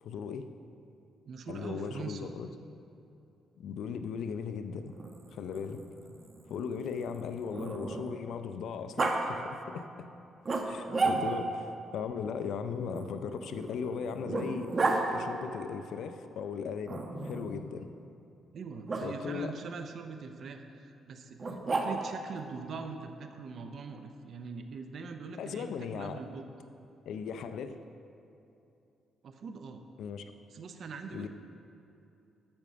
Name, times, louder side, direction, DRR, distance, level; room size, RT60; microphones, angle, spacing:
voice 1, 0.0-0.5 1.5-2.5 3.6-4.9 5.3-5.8 6.5-9.5 9.7-9.9 10.6-14.7 15.0-17.9 19.0-19.5 25.4-26.2 27.1-27.8 30.0-30.3 31.1-31.3, left 6 dB, 75° left, 9 dB, 0.5 m, -37 dB
voice 2, 1.3-2.3 11.2-11.3 18.5-26.5 29.2-29.8 30.5-31.3, right 5 dB, 60° right, 6 dB, 0.7 m, -42 dB
Growling, 4.9-8.3 9.0-9.2 10.5-11.6 12.9-15.0 16.9-17.6 18.9-19.0 21.4-22.2, right 3 dB, 35° right, 1.1 m, -33 dB
8.7 x 6.1 x 6.8 m, 2.7 s
cardioid pair, 90°, 0 cm